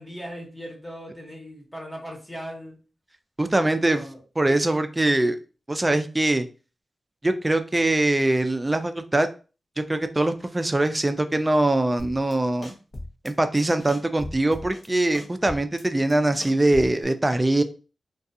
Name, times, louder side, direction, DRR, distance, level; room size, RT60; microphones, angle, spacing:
voice 1, 0.0-2.8 3.8-4.2, equal, 15° left, -1 dB, 1.0 m, -38 dB
voice 2, 3.4-4.0 4.4-5.4 5.7-6.5 7.2-9.3 9.8-12.7 13.2-17.6, right 2 dB, 25° right, 9 dB, 0.4 m, -22 dB
sound 1, 12.0-12.3 12.6-13.3 13.6-14.9 15.1-17.0, left 1 dB, 45° left, 0.7 m, -38 dB
2.3 x 2.3 x 2.6 m, 0.34 s
cardioid pair, 45°, 0 cm